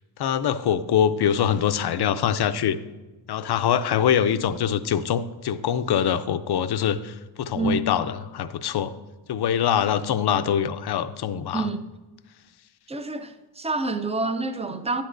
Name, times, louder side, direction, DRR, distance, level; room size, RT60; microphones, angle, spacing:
voice 1, 0.2-2.8 3.3-8.9 9.3-11.7, left 9 dB, 55° left, 0.5 m, -24 dB
voice 2, 7.5-7.9 11.5-11.9 12.9-15.0, right 3 dB, 15° right, 0.4 m, -27 dB
10.5 x 10.0 x 2.6 m
cardioid pair, 95°, 47 cm